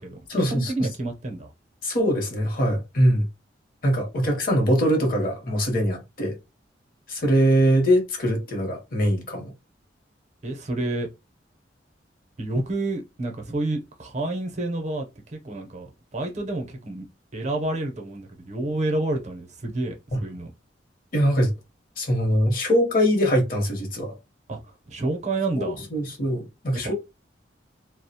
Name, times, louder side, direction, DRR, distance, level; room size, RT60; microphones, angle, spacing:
voice 1, 0.0-1.5 10.4-11.1 12.4-17.1 17.3-20.5 24.5-25.8, right 2 dB, 40° right, 0.6 m, -29 dB
voice 2, 1.8-3.3 3.8-6.4 7.1-9.5 21.1-21.5 22.0-24.1 25.6-26.9, equal, 50° left, 0.8 m, -22 dB
2.3 x 2.0 x 2.7 m
head